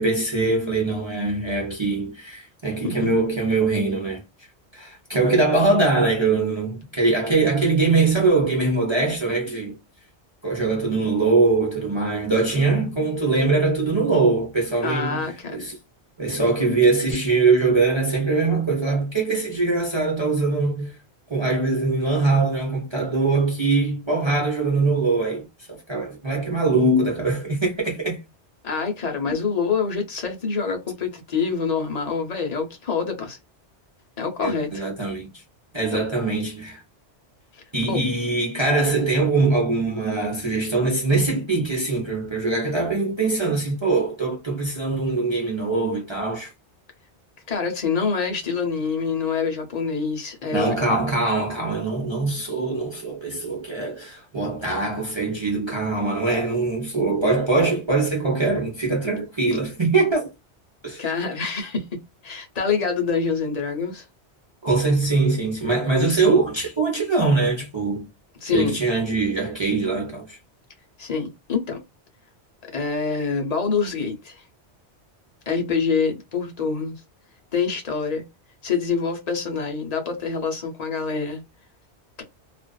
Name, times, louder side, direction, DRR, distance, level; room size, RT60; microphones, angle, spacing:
voice 1, 0.0-4.2 4.7-9.8 10.4-15.8 16.2-21.0 21.3-28.2 34.4-35.3 35.7-36.8 37.7-46.5 50.5-60.3 60.8-61.0 64.6-68.1 68.5-70.4, right 3 dB, 30° right, 0.7 m, -22 dB
voice 2, 14.8-15.6 28.6-33.4 34.2-34.9 35.9-36.0 37.5-38.0 47.5-50.7 61.0-64.0 68.4-68.8 71.0-71.8 72.7-74.4 75.5-77.0 77.5-78.2 78.6-81.4, left 5 dB, 40° left, 0.8 m, -26 dB
2.4 x 2.4 x 2.2 m
omnidirectional pair, 1.2 m